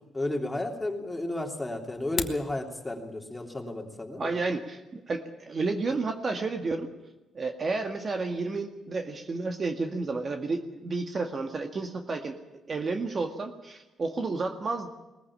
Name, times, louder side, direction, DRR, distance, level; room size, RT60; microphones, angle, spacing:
voice 1, 0.1-4.3, left 1 dB, 10° left, 2 dB, 3.2 m, -33 dB
sound 1, 1.9-2.5, left 6 dB, 50° left, 1.6 m, -33 dB
voice 2, 4.2-6.9 7.3-12.4 12.7-14.9, right 3 dB, 40° right, 4 dB, 1.8 m, -31 dB
20.5 x 15.0 x 8.7 m, 1.0 s
cardioid pair, 90°, 0 cm